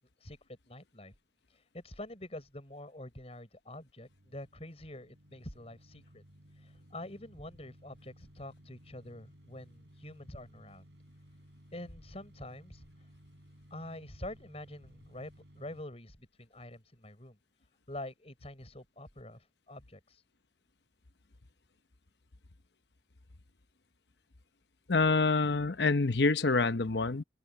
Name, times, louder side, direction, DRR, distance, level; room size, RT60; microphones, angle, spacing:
voice 1, 0.7-1.1 1.5-6.2 6.6-10.8 11.7-12.8 13.7-17.4 17.9-20.2, left 1 dB, 35° left, 6.4 m, -46 dB
sound 1, 4.0-15.8, equal, 75° right, 6.2 m, -58 dB
voice 2, 24.9-27.2, left 3 dB, 75° left, 0.9 m, -26 dB
open air
head